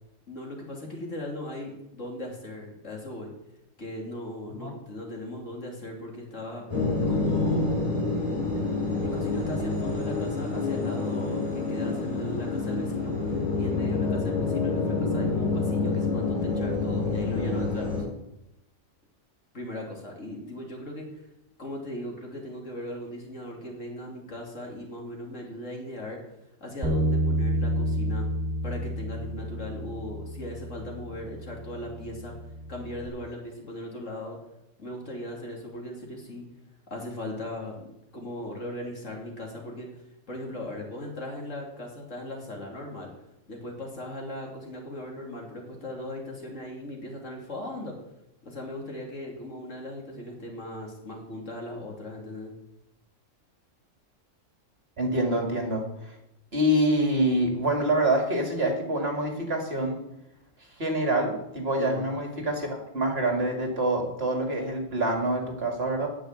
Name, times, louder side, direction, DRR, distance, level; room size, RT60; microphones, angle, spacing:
voice 1, 0.3-3.3 3.8-6.6 7.1-7.9 8.9-18.0 19.5-21.2 21.6-26.2 26.6-28.2 28.6-32.3 32.7-34.4 34.8-36.4 36.9-37.7 38.1-39.9 40.3-43.1 43.5-47.9 48.4-52.5 61.8-62.1, left 1 dB, 75° left, 0 dB, 3.0 m, -38 dB
sound 1, 6.7-18.0, left 3 dB, 25° left, 4.0 m, -27 dB
Bass guitar, 26.8-33.1, equal, 30° right, 2.8 m, -30 dB
voice 2, 55.0-56.2 56.5-60.0 60.8-66.1, right 1 dB, 50° right, 3 dB, 2.3 m, -26 dB
9.1 x 7.1 x 8.9 m, 0.85 s
omnidirectional pair, 1.3 m